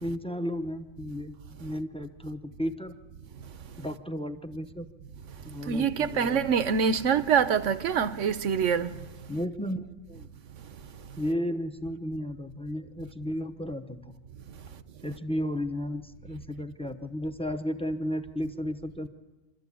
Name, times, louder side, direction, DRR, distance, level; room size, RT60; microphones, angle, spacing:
voice 1, 0.0-2.9 3.8-4.9 5.4-6.5 9.3-10.3 11.2-14.0 15.0-19.1, equal, 5° left, 0.8 m, -33 dB
voice 2, 5.7-8.9, right 7 dB, 70° right, 1.2 m, -25 dB
26.0 x 13.5 x 8.6 m
omnidirectional pair, 1.3 m